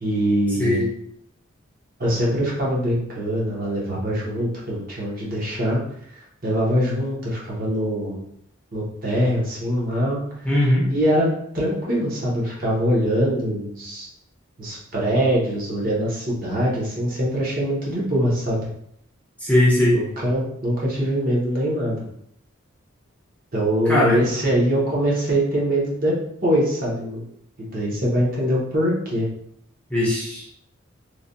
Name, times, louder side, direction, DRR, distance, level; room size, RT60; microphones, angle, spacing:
voice 1, 0.0-0.8 2.0-5.8 6.1-8.2 8.7-10.2 10.9-11.3 11.5-14.1 14.6-18.7 19.9-22.0 23.5-26.1 26.4-27.2 27.6-29.3, equal, 40° right, -5 dB, 0.8 m, -23 dB
voice 2, 10.5-10.9 19.4-20.0 23.9-24.2 29.9-30.4, left 1 dB, 5° left, -7 dB, 0.5 m, -19 dB
3.2 x 2.2 x 2.6 m, 0.72 s
head